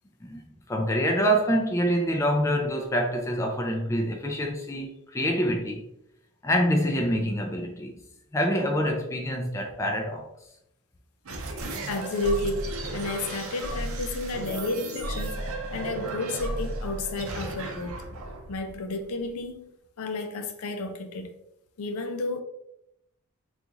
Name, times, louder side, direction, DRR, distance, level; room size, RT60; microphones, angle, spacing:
voice 1, 0.2-5.8 6.4-8.0 8.3-10.3, equal, 15° left, 0.3 m, -26 dB
sound 1, 11.2-19.5, right 2 dB, 70° right, 0.6 m, -34 dB
voice 2, 11.9-15.4 15.7-18.0 18.5-19.7 20.0-21.4 21.8-22.4, left 2 dB, 85° left, 0.5 m, -31 dB
3.7 x 2.4 x 2.8 m
head